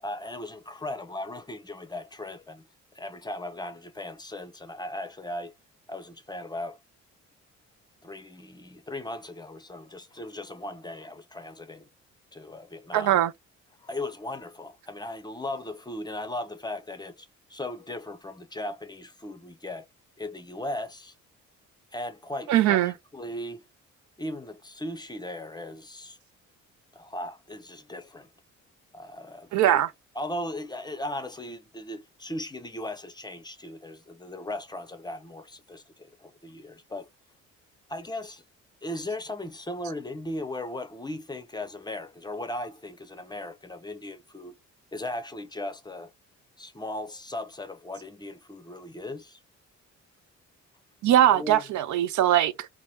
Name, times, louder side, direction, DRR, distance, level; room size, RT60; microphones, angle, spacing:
voice 1, 0.0-2.7 2.9-5.5 5.9-6.8 8.0-11.9 12.3-13.2 13.8-19.9 20.2-21.1 21.9-23.6 24.2-26.2 26.9-28.3 28.9-29.8 30.2-37.1 37.9-38.4 38.8-44.5 44.9-46.1 46.6-49.4 51.3-51.6, left 1 dB, 15° left, 0.5 m, -37 dB
voice 2, 12.9-13.3 22.5-22.9 29.5-29.9 51.0-52.7, right 12 dB, 75° right, 0.5 m, -21 dB
2.8 x 2.2 x 3.0 m
cardioid pair, 90°, 30 cm